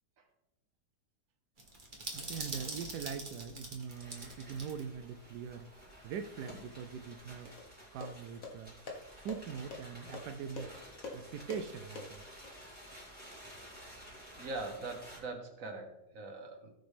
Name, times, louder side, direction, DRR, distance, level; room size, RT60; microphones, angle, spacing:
sound 1, 1.6-4.8 5.1-5.2 6.2-7.6, right 2 dB, 30° right, 1.8 m, -45 dB
voice 1, 2.1-7.5 7.9-8.8 9.2-10.7 11.1-12.2, right 7 dB, 90° right, 8 dB, 1.2 m, -42 dB
sound 2, 3.9-15.2, equal, 5° right, 4.3 m, -53 dB
sound 3, 7.6-12.5, left 3 dB, 55° left, 1.9 m, -47 dB
voice 2, 14.4-16.7, right 3 dB, 55° right, 5 dB, 1.8 m, -42 dB
18.5 x 6.1 x 3.4 m, 0.90 s
omnidirectional pair, 1.7 m